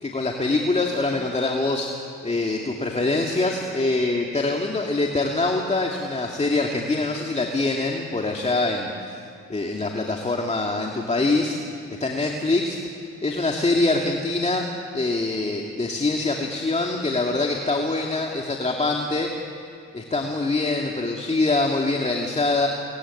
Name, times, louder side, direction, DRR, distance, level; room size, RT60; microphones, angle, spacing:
voice 1, 0.0-1.9 2.2-9.2 9.5-11.6 11.9-12.8 13.2-14.6 14.9-19.3 19.9-22.7, left 2 dB, 20° left, 0 dB, 2.4 m, -24 dB
24.0 x 19.5 x 9.8 m, 2.4 s
cardioid pair, 90°, 30 cm